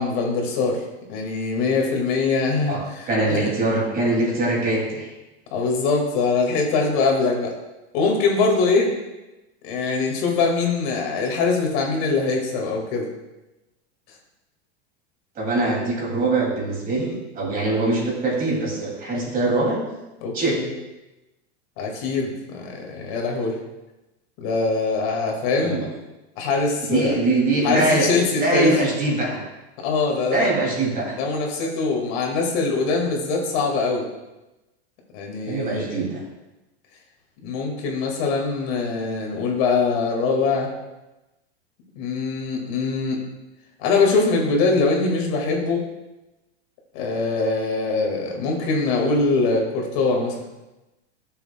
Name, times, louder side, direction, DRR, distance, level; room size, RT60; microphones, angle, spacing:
voice 1, 0.0-3.5 5.5-7.6 7.9-9.0 9.6-13.1 16.9-17.2 20.2-20.7 21.8-23.6 24.4-25.8 26.4-27.2 27.6-28.8 29.8-30.5 31.2-34.1 35.1-36.0 37.4-40.7 42.0-43.2 43.8-45.9 46.9-50.4, left 4 dB, 55° left, 0 dB, 2.0 m, -23 dB
voice 2, 3.1-5.1 15.4-19.8 20.3-20.6 25.6-25.9 26.8-28.1 28.4-29.4 30.3-31.2 35.5-36.2, right 2 dB, 25° right, -2 dB, 2.5 m, -22 dB
11.0 x 7.0 x 2.2 m, 1.0 s
supercardioid pair, 135°, 33 cm